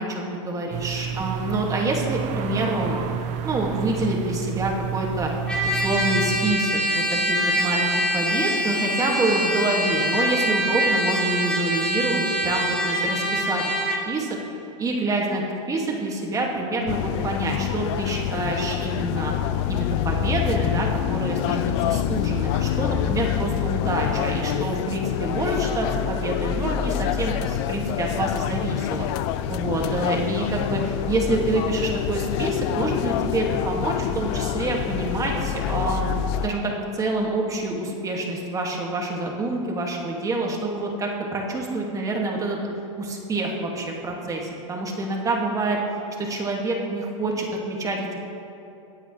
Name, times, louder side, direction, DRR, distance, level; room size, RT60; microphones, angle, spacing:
voice 1, 0.0-3.0 3.4-5.3 5.6-13.6 14.1-14.3 14.8-15.4 15.7-19.3 19.7-29.1 29.5-36.1 36.4-42.6 43.0-45.8 46.2-48.2, right 2 dB, 20° right, -1 dB, 2.2 m, -27 dB
sound 1, 0.7-6.5, right 8 dB, 45° right, 0.9 m, -30 dB
Trumpet, 5.5-14.0, equal, 5° left, 2.4 m, -24 dB
sound 2, 16.9-36.5, left 10 dB, 55° left, 0.6 m, -26 dB
24.0 x 9.0 x 3.3 m, 2.8 s
hypercardioid pair, 120°, 17 cm